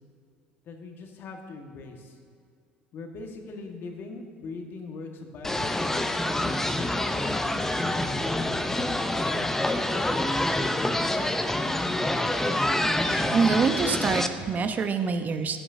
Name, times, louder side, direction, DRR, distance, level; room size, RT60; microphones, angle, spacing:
voice 1, 0.6-2.2 2.9-6.3 6.8-9.8, left 3 dB, 50° left, 3 dB, 1.7 m, -41 dB
sound 1, 5.4-14.3, left 1 dB, 10° left, 0.7 m, -26 dB
voice 2, 13.0-15.6, right 5 dB, 35° right, 8 dB, 1.0 m, -25 dB
15.0 x 9.8 x 2.8 m, 2.3 s
hypercardioid pair, 65°, 5 cm